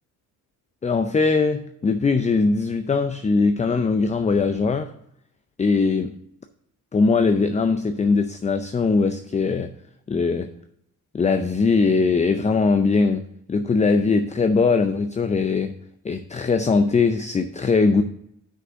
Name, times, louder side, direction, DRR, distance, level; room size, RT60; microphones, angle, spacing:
voice 1, 0.8-4.9 5.6-6.1 6.9-9.7 10.1-10.5 11.1-15.7 16.0-18.0, left 4 dB, 20° left, 9 dB, 0.5 m, -21 dB
6.2 x 5.4 x 6.2 m, 0.74 s
supercardioid pair, 80°, 37 cm